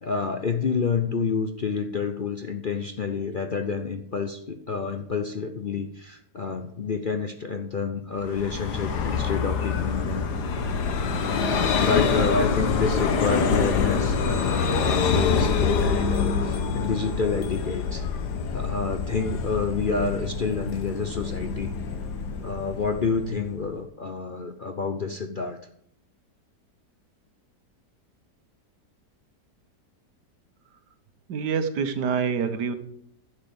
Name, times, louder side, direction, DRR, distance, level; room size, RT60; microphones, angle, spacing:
voice 1, 0.0-10.3 11.5-18.0 18.5-21.7 22.4-25.6, left 5 dB, 55° left, 6 dB, 0.6 m, -28 dB
Vehicle, 8.2-23.7, left 5 dB, 75° left, 1.7 m, -26 dB
voice 2, 31.3-32.7, right 6 dB, 75° right, 9 dB, 1.7 m, -26 dB
11.0 x 7.4 x 7.0 m, 0.71 s
omnidirectional pair, 1.8 m